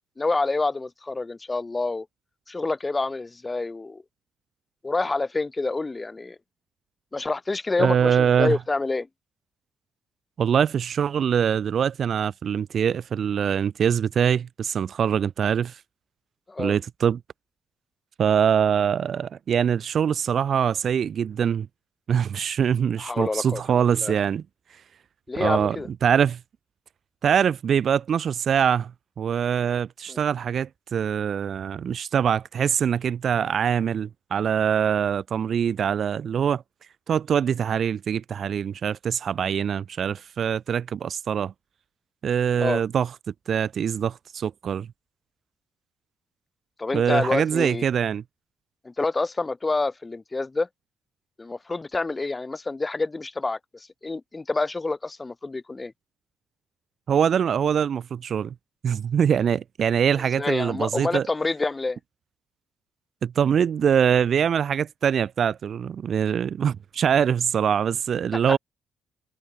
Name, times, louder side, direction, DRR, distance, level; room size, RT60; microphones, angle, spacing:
voice 1, 0.2-2.1 2.5-4.0 4.8-6.4 7.1-9.1 16.5-16.8 23.0-23.6 23.9-24.1 25.3-25.9 30.1-30.2 42.6-42.8 46.8-47.9 48.8-50.7 51.4-55.9 60.4-62.0 68.3-68.6, left 3 dB, 20° left, 3.0 m, -27 dB
voice 2, 7.8-8.6 10.4-15.8 16.6-17.2 18.2-21.7 22.1-24.4 25.4-25.8 26.0-26.4 27.2-28.9 29.2-36.6 37.1-41.5 42.2-43.1 43.5-44.9 46.9-48.2 57.1-58.5 58.8-61.3 63.2-68.6, right 8 dB, 55° right, 1.4 m, -23 dB
cardioid pair, 90°, 0 cm